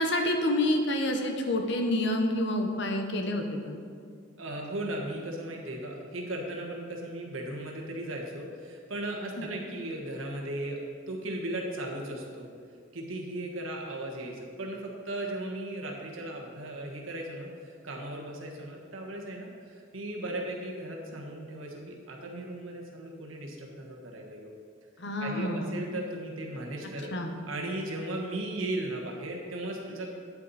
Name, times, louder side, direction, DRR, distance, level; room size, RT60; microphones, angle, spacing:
voice 1, 0.0-3.8 9.4-9.5 25.0-25.8 27.1-27.3, left 1 dB, 60° left, 4 dB, 1.0 m, -28 dB
voice 2, 4.4-10.8 11.1-12.5 12.9-24.5 25.2-27.1 27.5-30.1, right 1 dB, 90° right, 0 dB, 1.4 m, -36 dB
9.5 x 8.4 x 4.2 m, 2.2 s
head